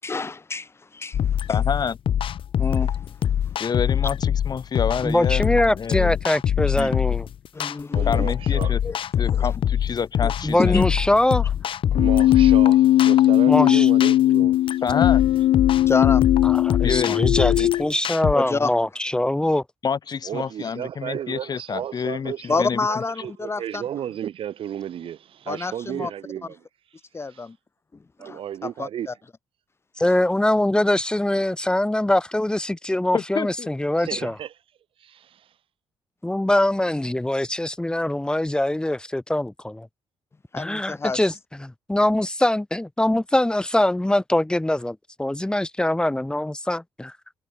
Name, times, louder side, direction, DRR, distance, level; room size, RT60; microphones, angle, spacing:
voice 1, 0.0-1.2 2.6-2.9 7.5-8.3 8.8-9.0 9.3-9.5 10.2-10.3 10.7-10.9 15.9-16.2 18.3-18.7 22.5-23.8 25.5-26.1 27.1-27.6 28.2-29.1 40.5-41.2, left 4 dB, 25° left, 7.8 m, -28 dB
sound 1, 1.1-18.3, left 9 dB, 65° left, 5.2 m, -24 dB
voice 2, 1.5-2.0 3.6-6.2 6.8-6.9 8.0-8.8 9.2-10.8 14.8-15.2 16.8-17.2 19.8-23.0 33.1-33.7, left 6 dB, 45° left, 6.4 m, -28 dB
voice 3, 5.0-7.3 10.4-11.5 13.5-13.9 16.4-19.6 30.0-34.3 36.2-39.9 40.6-41.3 41.6-47.1, left 1 dB, 10° left, 3.1 m, -23 dB
voice 4, 7.9-8.7 11.9-14.8 20.2-26.6 27.3-27.4 28.2-29.1 34.0-34.5 35.0-35.4, right 10 dB, 70° right, 4.6 m, -33 dB
Keyboard (musical), 11.9-17.9, left 14 dB, 85° left, 1.2 m, -18 dB
cardioid pair, 100°, 10 cm